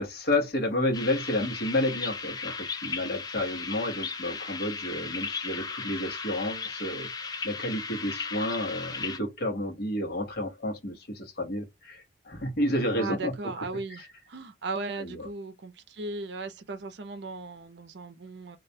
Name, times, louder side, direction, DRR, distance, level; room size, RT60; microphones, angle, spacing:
voice 1, 0.0-13.3 13.9-14.1 15.0-15.3, left 1 dB, 60° left, 0.9 m, -31 dB
sound 1, 0.9-9.2, left 5 dB, 20° left, 0.4 m, -36 dB
voice 2, 13.0-14.0 14.3-18.6, right 3 dB, 65° right, 0.5 m, -37 dB
2.4 x 2.1 x 2.6 m
head